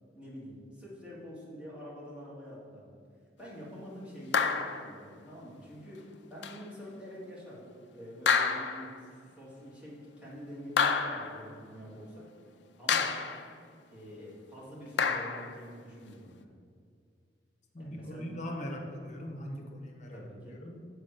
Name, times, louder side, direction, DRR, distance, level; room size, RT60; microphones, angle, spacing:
voice 1, 0.1-3.0 3.4-12.2 12.8-13.2 13.9-16.5 17.8-18.5 20.1-20.6, equal, 5° right, -7 dB, 2.3 m, -46 dB
sound 1, 4.3-4.9 6.4-6.6 8.3-9.0 10.8-11.4 12.9-13.5 15.0-15.5, left 5 dB, 75° left, 0.5 m, -28 dB
voice 2, 17.7-20.9, equal, 40° left, 2 dB, 1.1 m, -41 dB
7.2 x 4.9 x 6.7 m, 2.2 s
head